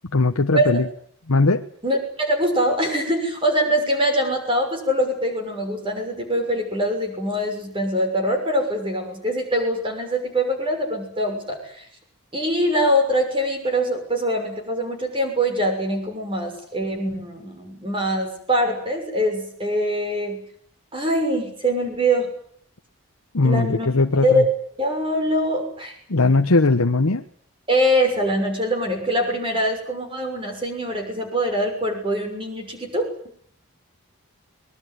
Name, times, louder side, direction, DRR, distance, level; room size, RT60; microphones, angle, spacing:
voice 1, 0.1-0.9 1.3-1.6 23.3-24.4 26.1-27.2, left 3 dB, 80° left, 5 dB, 1.1 m, -19 dB
voice 2, 1.8-11.9 12.3-20.4 20.9-22.3 23.4-23.9 24.2-24.4 24.8-25.9 27.7-33.1, equal, 25° right, 4 dB, 6.4 m, -23 dB
24.0 x 21.0 x 9.4 m, 0.63 s
head